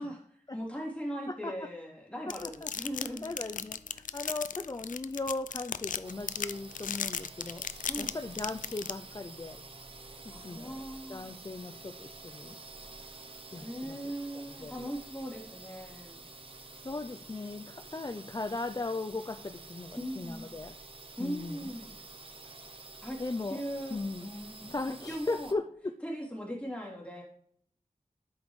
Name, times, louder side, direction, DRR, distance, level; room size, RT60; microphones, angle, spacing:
voice 1, 0.0-3.3 7.9-8.1 10.3-11.3 13.6-16.2 19.9-20.5 21.2-21.9 23.0-23.2 23.4-25.6 26.0-27.2, equal, 10° left, -3 dB, 3.1 m, -39 dB
sound 1, 2.3-8.9, left 7 dB, 90° left, 0.4 m, -35 dB
sound 2, 3.0-5.2, left 1 dB, 60° left, 1.9 m, -59 dB
voice 2, 3.2-7.6 8.0-9.6 10.4-10.8 11.1-12.6 13.5-14.0 14.3-14.9 16.8-20.8 21.2-21.7 23.2-23.6 23.9-24.3 24.7-25.9, left 3 dB, 30° left, 7 dB, 0.5 m, -37 dB
sound 3, 6.0-25.5, right 3 dB, 45° right, 0.7 m, -49 dB
12.0 x 5.2 x 3.2 m, 0.64 s
wide cardioid pair, 85°, 13 cm